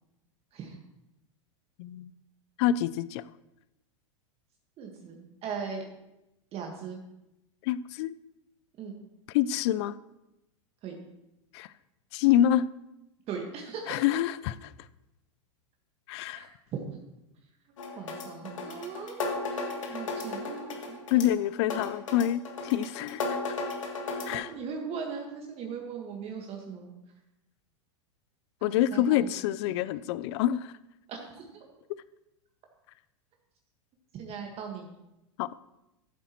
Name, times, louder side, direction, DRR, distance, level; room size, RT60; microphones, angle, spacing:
voice 1, 1.8-2.1 2.6-3.2 7.6-8.1 9.3-9.9 11.5-11.7 12.1-12.6 13.9-14.7 16.1-16.5 21.1-23.6 24.2-24.5 28.6-30.7 35.4-35.5, left 11 dB, 60° left, 17 dB, 0.5 m, -27 dB
voice 2, 4.8-5.8 6.5-7.0 8.8-9.0 10.8-11.0 13.3-14.0 16.3-16.8 17.9-21.1 24.3-26.9 28.6-29.4 31.1-31.7 34.1-34.9, right 6 dB, 40° right, 1 dB, 1.6 m, -39 dB
sound 1, 17.8-24.4, left 3 dB, 80° left, 1.8 m, -35 dB
14.0 x 8.1 x 3.1 m, 0.90 s
hypercardioid pair, 105°, 16 cm